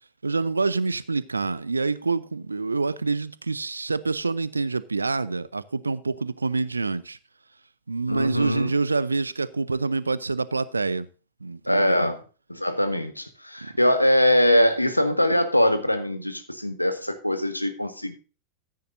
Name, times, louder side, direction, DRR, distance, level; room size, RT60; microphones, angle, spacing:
voice 1, 0.2-7.2 7.9-11.1 11.4-12.1 13.6-13.7, right 3 dB, 80° right, 0.6 m, -26 dB
voice 2, 8.1-8.7 11.7-12.2 12.5-18.2, left 1 dB, 90° left, 1.3 m, -22 dB
14.0 x 9.4 x 2.6 m
figure-of-eight pair, 90°, 0 cm